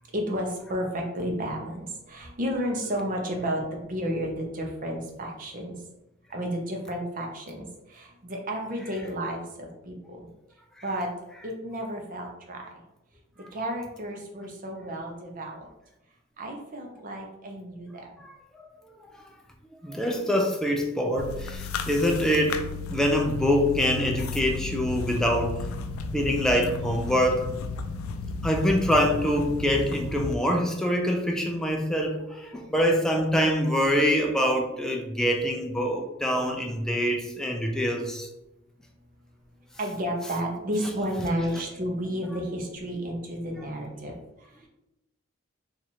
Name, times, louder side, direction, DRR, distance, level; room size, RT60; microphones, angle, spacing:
voice 1, 0.1-5.8 6.3-10.3 10.8-11.1 11.4-12.8 13.5-15.7 16.4-18.2 39.8-44.2, equal, 40° right, 2 dB, 0.6 m, -32 dB
voice 2, 18.2-18.6 19.8-25.7 26.1-27.5 28.4-38.3, equal, 5° left, 1 dB, 0.3 m, -25 dB
sound 1, 21.2-30.3, left 4 dB, 80° left, 0.3 m, -34 dB
2.9 x 2.4 x 4.1 m, 0.92 s
head